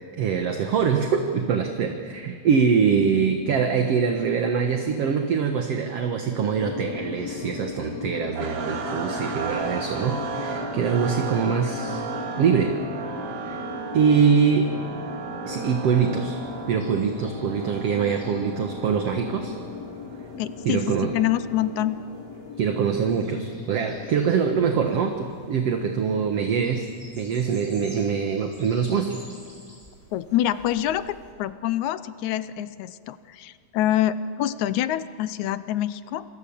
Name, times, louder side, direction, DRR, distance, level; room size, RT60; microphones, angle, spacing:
voice 1, 0.2-12.1 12.4-12.8 13.5-13.6 13.9-14.7 15.5-16.4 16.7-19.5 20.7-21.2 22.6-26.9 27.2-29.2, right 6 dB, 60° right, 4 dB, 2.2 m, -23 dB
sound 1, 6.6-25.1, left 5 dB, 60° left, 2.5 m, -38 dB
sound 2, 8.4-22.5, right 6 dB, 80° right, 3.5 m, -36 dB
sound 3, 16.2-31.3, equal, 10° left, 6.5 m, -52 dB
voice 2, 20.4-22.0 30.1-36.3, left 12 dB, 75° left, 14 dB, 2.0 m, -26 dB
27.0 x 23.0 x 7.2 m, 2.1 s
omnidirectional pair, 3.5 m